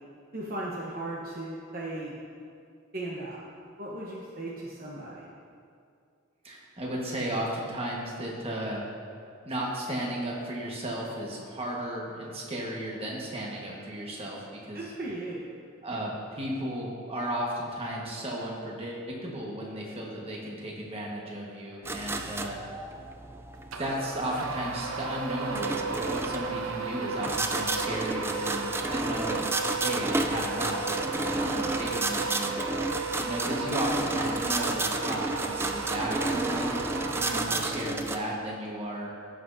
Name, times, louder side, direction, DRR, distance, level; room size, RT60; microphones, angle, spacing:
voice 1, 0.3-2.2 2.9-3.4 3.8-5.3 14.7-15.5 37.4-37.7, right 2 dB, 45° right, -5 dB, 0.9 m, -37 dB
voice 2, 6.4-8.8 9.4-14.4 14.6-14.9 15.8-22.6 23.8-36.7 37.1-39.1, right 1 dB, 30° right, -3 dB, 1.3 m, -34 dB
sound 1, 21.9-38.2, right 2 dB, 10° right, 0.3 m, -32 dB
sound 2, 23.7-38.0, right 4 dB, 85° right, 0.7 m, -34 dB
15.5 x 6.1 x 2.6 m, 2.4 s
head